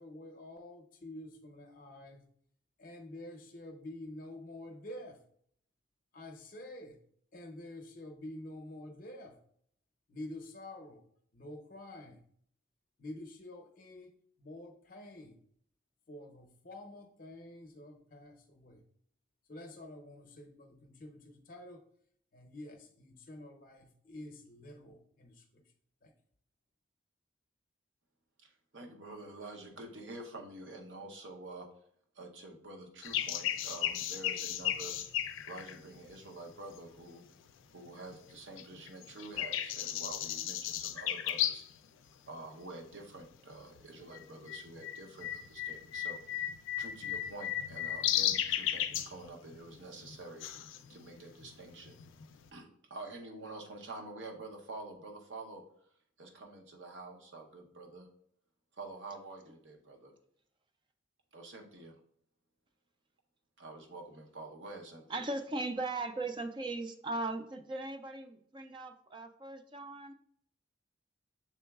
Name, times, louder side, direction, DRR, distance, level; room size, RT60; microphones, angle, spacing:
voice 1, 0.0-2.2 2.8-5.2 6.1-7.0 7.3-9.4 10.1-11.0 11.3-12.2 13.0-14.1 14.4-15.4 16.1-18.8 19.5-21.8 22.3-25.6 26.0-26.1, left 1 dB, 45° left, 4 dB, 0.6 m, -48 dB
voice 2, 28.4-31.7 32.1-34.9 35.5-37.2 37.7-41.6 42.3-46.2 46.8-50.5 50.9-52.0 52.5-55.6 56.2-58.1 58.8-60.1 61.3-62.0 63.6-65.2, right 2 dB, 70° right, 2 dB, 0.8 m, -48 dB
sound 1, 33.0-37.0 37.5-38.3 38.6-41.8 42.1-42.2 42.9-43.2 43.5-52.5, left 11 dB, 80° left, 0.4 m, -35 dB
voice 3, 65.1-70.1, right 2 dB, 25° right, 8 dB, 0.3 m, -38 dB
6.0 x 3.9 x 2.3 m, 0.65 s
head